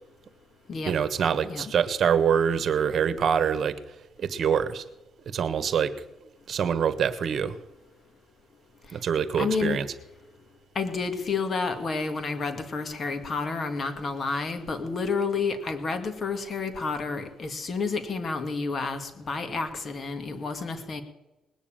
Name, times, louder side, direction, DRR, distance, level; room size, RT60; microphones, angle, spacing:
voice 1, 0.9-3.8 4.2-4.8 5.3-5.9 6.5-7.6 8.9-9.9, right 7 dB, 55° right, 12 dB, 1.3 m, -25 dB
voice 2, 9.4-9.8 10.8-21.0, left 4 dB, 45° left, 7 dB, 2.3 m, -30 dB
19.5 x 7.2 x 9.0 m, 1.0 s
cardioid pair, 90°, 0 cm